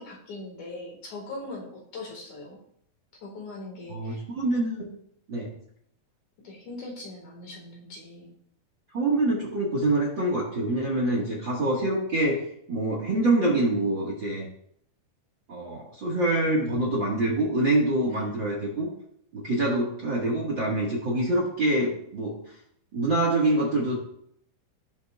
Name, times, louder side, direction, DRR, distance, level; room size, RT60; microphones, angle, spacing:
voice 1, 0.0-2.6 3.2-4.2 6.4-8.3 18.1-18.2, left 2 dB, 55° left, -1 dB, 3.1 m, -40 dB
voice 2, 3.9-5.0 5.3-5.5 8.9-12.4 12.7-14.5 15.5-18.9 19.3-22.4 22.9-24.0, right 2 dB, 40° right, -2 dB, 1.8 m, -25 dB
17.5 x 7.1 x 2.4 m, 0.70 s
omnidirectional pair, 4.4 m